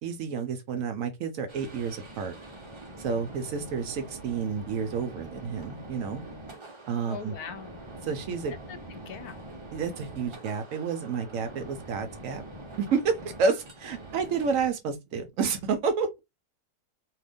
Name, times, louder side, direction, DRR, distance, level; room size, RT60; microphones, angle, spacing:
voice 1, 0.0-2.4 3.0-6.2 6.9-7.3 8.0-8.5 9.7-12.4 12.8-16.1, right 5 dB, 70° right, 0.9 m, -30 dB
sound 1, 1.5-14.7, right 1 dB, 25° right, 0.7 m, -44 dB
voice 2, 7.1-7.8 8.5-9.4, left 6 dB, 80° left, 1.2 m, -41 dB
2.8 x 2.5 x 3.4 m
omnidirectional pair, 1.6 m